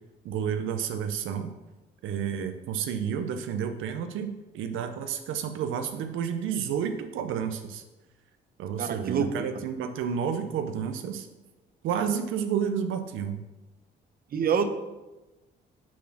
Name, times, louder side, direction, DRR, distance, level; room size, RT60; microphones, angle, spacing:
voice 1, 0.2-1.5 2.0-7.8 8.6-11.3 11.8-13.4, right 7 dB, 85° right, 7 dB, 0.6 m, -30 dB
voice 2, 8.8-9.3 14.3-14.7, right 7 dB, 50° right, 8 dB, 0.7 m, -26 dB
6.0 x 4.1 x 5.9 m, 1.1 s
cardioid pair, 90°, 20 cm